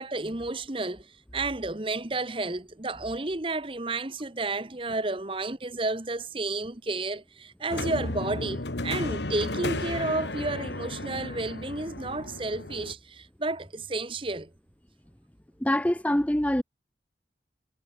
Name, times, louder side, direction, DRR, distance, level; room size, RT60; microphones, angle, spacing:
voice 1, 0.0-14.5, right 2 dB, 30° right, 1.2 m, -31 dB
sound 1, 7.7-12.9, left 2 dB, 85° left, 1.9 m, -34 dB
voice 2, 15.6-16.6, left 1 dB, 10° left, 0.7 m, -24 dB
head